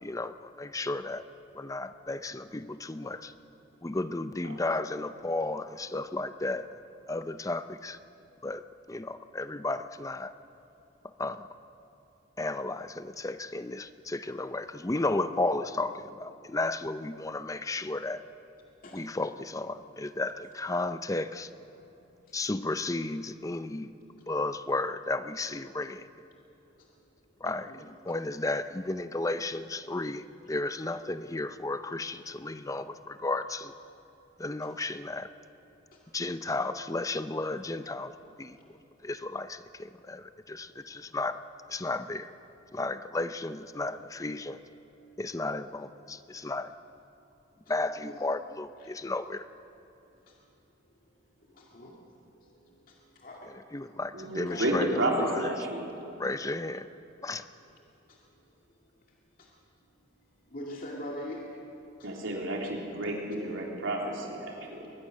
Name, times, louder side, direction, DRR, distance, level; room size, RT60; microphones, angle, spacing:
voice 1, 0.0-1.2 1.5-3.3 3.8-6.7 7.1-8.0 8.4-8.6 8.9-10.3 11.2-11.5 12.4-18.2 18.9-21.5 22.3-23.9 24.3-26.1 27.4-33.7 34.4-35.3 36.1-38.1 38.4-38.6 39.0-41.4 41.7-42.3 42.7-44.6 45.2-46.7 47.7-49.5 53.7-55.5 56.2-56.9 57.2-57.4, left 2 dB, 15° left, 12 dB, 0.5 m, -33 dB
voice 2, 51.5-51.9 52.3-52.5 52.9-53.5 54.5-54.6 58.1-58.2 59.4-59.5 60.5-61.5 62.0-62.1, left 1 dB, 45° left, -2 dB, 2.3 m, -42 dB
voice 3, 54.1-55.9 62.0-64.9, right 1 dB, 80° right, -1 dB, 3.5 m, -31 dB
22.5 x 19.0 x 6.4 m, 2.9 s
head